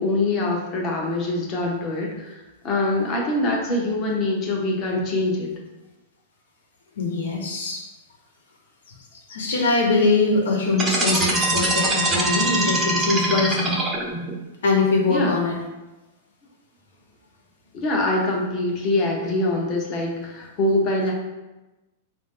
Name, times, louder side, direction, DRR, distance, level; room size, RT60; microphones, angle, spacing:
voice 1, 0.0-5.5 15.1-15.4 17.7-21.1, left 2 dB, 25° left, -1 dB, 0.7 m, -24 dB
voice 2, 7.0-7.8 9.3-13.7 14.6-15.6, left 3 dB, 85° left, 1 dB, 1.0 m, -22 dB
sound 1, 10.7-14.3, right 1 dB, 10° right, 0.6 m, -22 dB
4.7 x 2.5 x 3.6 m, 1.1 s
supercardioid pair, 170°, 0 cm